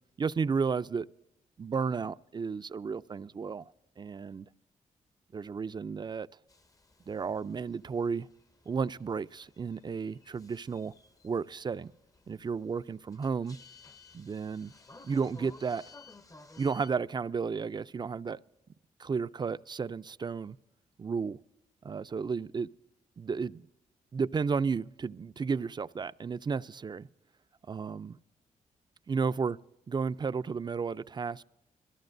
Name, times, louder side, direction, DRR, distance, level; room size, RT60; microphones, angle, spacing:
voice 1, 0.2-1.1 1.6-3.6 4.0-4.5 5.3-6.3 7.1-8.3 8.7-10.9 11.2-11.9 12.3-13.6 14.1-14.7 15.0-15.8 16.6-18.4 19.0-20.6 21.0-21.4 21.9-22.7 23.2-23.6 24.1-27.1 27.7-28.2 29.1-29.6 29.9-31.4, right 5 dB, 30° right, 0.4 m, -33 dB
sound 1, 6.5-16.9, left 3 dB, 25° left, 0.6 m, -56 dB
23.0 x 14.5 x 2.6 m
cardioid pair, 75°, 14 cm